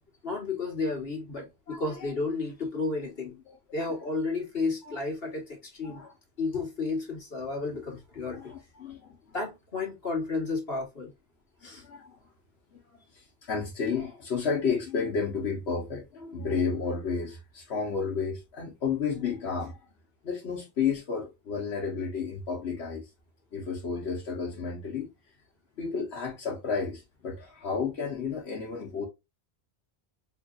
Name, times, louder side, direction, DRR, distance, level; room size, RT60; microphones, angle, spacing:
voice 1, 0.2-3.4 3.7-6.0 6.4-8.6 9.3-11.1 11.6-11.8, left 3 dB, 65° left, 1.8 m, -32 dB
voice 2, 1.7-2.1 3.5-3.6 4.8-5.0 5.8-6.1 8.3-9.2 11.8-12.2 12.7-19.8 20.2-23.1 23.5-25.1 25.8-29.1, left 5 dB, 85° left, 1.3 m, -32 dB
4.4 x 3.1 x 2.4 m
omnidirectional pair, 1.1 m